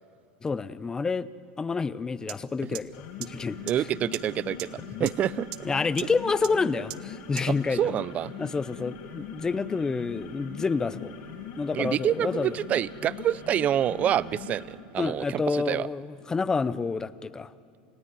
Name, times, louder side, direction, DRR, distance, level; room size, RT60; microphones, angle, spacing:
voice 1, 0.4-1.3 1.6-3.6 5.0-5.1 5.6-7.9 8.4-11.1 11.6-12.6 15.0-17.5, left 4 dB, 15° left, 17 dB, 0.6 m, -28 dB
sound 1, 2.3-2.4 2.7-2.8 3.2-3.3 3.7-3.8 4.1-4.2 4.6-4.7 5.1-5.2 5.5-5.6 6.0-6.1 6.4-6.5 6.9-7.0 7.4-7.5, right 20 dB, 65° right, 0.9 m, -35 dB
sound 2, 2.8-14.8, left 6 dB, 65° left, 4.7 m, -41 dB
voice 2, 3.7-4.7 5.0-5.5 7.7-8.3 11.7-15.9, right 10 dB, 30° right, 20 dB, 0.5 m, -27 dB
29.0 x 16.0 x 9.5 m, 2.7 s
supercardioid pair, 135°, 5 cm